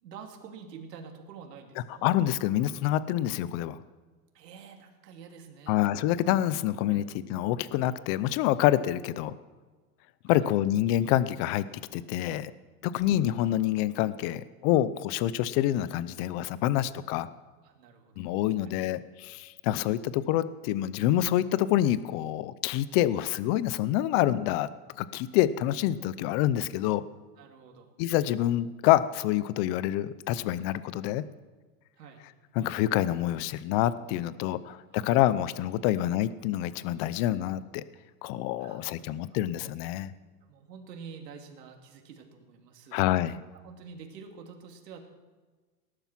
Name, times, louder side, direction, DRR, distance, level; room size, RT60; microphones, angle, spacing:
voice 1, 0.0-2.1 4.3-5.8 6.9-7.0 10.2-10.7 17.6-18.3 18.6-18.7 27.4-27.9 32.0-32.2 34.7-35.2 35.8-36.0 38.6-39.4 40.4-43.0 43.5-45.1, right 6 dB, 90° right, 3 dB, 3.0 m, -48 dB
voice 2, 2.0-3.8 5.7-9.3 10.2-11.6 11.9-12.5 12.8-17.3 18.2-24.7 25.0-27.0 28.0-31.2 32.6-37.8 38.2-40.1 42.9-43.4, left 13 dB, 40° left, 16 dB, 0.6 m, -27 dB
19.0 x 11.5 x 5.9 m, 1.3 s
supercardioid pair, 145°, 47 cm